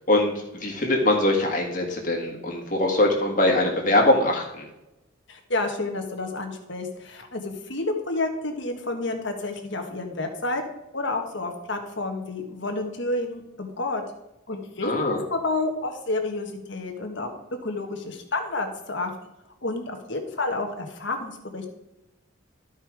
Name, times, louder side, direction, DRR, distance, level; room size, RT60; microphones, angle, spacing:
voice 1, 0.6-4.7 14.8-15.2, left 1 dB, 40° left, 1 dB, 1.9 m, -22 dB
voice 2, 5.3-10.6 10.9-14.0 14.5-17.3 17.6-19.1 19.6-21.7, left 2 dB, 60° left, 4 dB, 1.4 m, -30 dB
12.5 x 5.5 x 4.8 m, 0.94 s
head